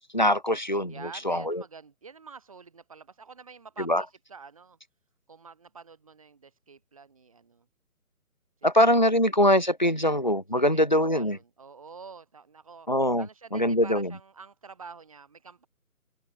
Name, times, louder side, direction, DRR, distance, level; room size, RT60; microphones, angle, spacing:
voice 1, 0.1-0.9 1.2-1.6 3.9-4.0 8.6-11.4 12.9-13.3 13.5-14.1, left 1 dB, 30° left, 0.6 m, -22 dB
voice 2, 0.9-4.8 5.3-7.7 8.6-8.7 10.0-10.1 10.5-12.9 13.2-15.7, right 5 dB, 25° right, 2.2 m, -48 dB
hypercardioid pair, 175°, 44 cm